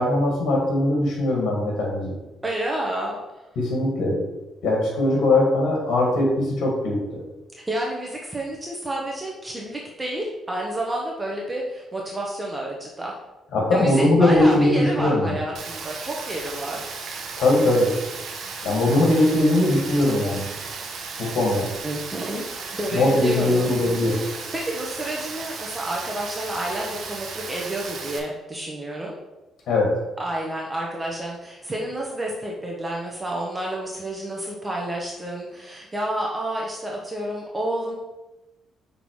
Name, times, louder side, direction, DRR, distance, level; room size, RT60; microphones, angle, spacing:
voice 1, 0.0-2.2 3.6-4.2 4.6-7.2 13.5-15.4 17.4-17.9 18.6-20.5 21.2-21.7 22.9-24.2 29.7-30.0, left 2 dB, 75° left, -1 dB, 2.0 m, -20 dB
voice 2, 2.4-3.2 7.7-13.1 13.7-16.9 21.8-22.4 22.7-23.8 24.2-24.3 24.5-29.1 30.2-37.9, right 1 dB, 20° right, -2 dB, 1.1 m, -29 dB
Rain, 15.5-28.2, right 4 dB, 65° right, 1.0 m, -35 dB
5.9 x 3.8 x 4.7 m, 1.0 s
cardioid pair, 90°, 0 cm